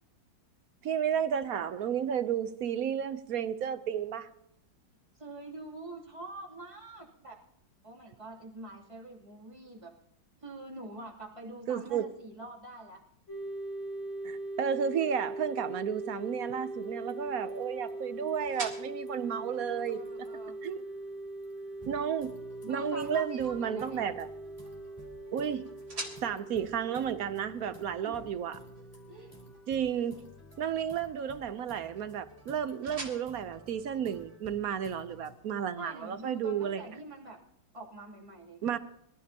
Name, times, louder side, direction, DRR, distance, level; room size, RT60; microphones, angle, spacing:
voice 1, 0.8-4.3 11.7-12.1 14.2-20.0 20.6-20.8 21.9-22.3 22.7-24.3 25.3-25.7 26.2-28.6 29.7-30.1 30.6-36.8 38.6-38.8, right 8 dB, 65° right, 0.9 m, -32 dB
voice 2, 5.1-7.4 7.8-9.9 10.4-13.0 19.5-20.6 22.6-24.1 28.0-28.2 29.1-29.4 35.8-37.4 37.7-38.6, right 2 dB, 15° right, 2.8 m, -45 dB
sound 1, 13.3-30.6, right 2 dB, 75° left, 4.3 m, -41 dB
sound 2, 15.8-34.7, right 2 dB, 45° right, 3.6 m, -50 dB
sound 3, 16.8-19.6 19.9-21.2 21.4-35.4, equal, 15° left, 3.8 m, -55 dB
24.5 x 14.0 x 2.8 m
omnidirectional pair, 2.1 m